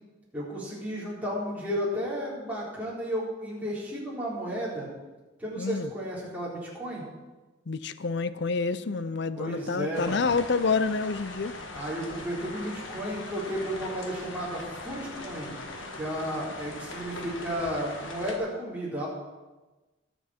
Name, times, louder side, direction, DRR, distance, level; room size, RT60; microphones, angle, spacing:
voice 1, 0.3-4.9 5.4-7.0 9.4-10.3 11.7-15.5 15.9-19.1, equal, 10° right, -7 dB, 4.2 m, -33 dB
voice 2, 5.6-5.9 7.7-11.5, left 4 dB, 55° left, 14 dB, 0.5 m, -28 dB
sound 1, 9.9-18.4, left 2 dB, 75° left, 1.5 m, -40 dB
20.5 x 7.2 x 4.4 m, 1.2 s
head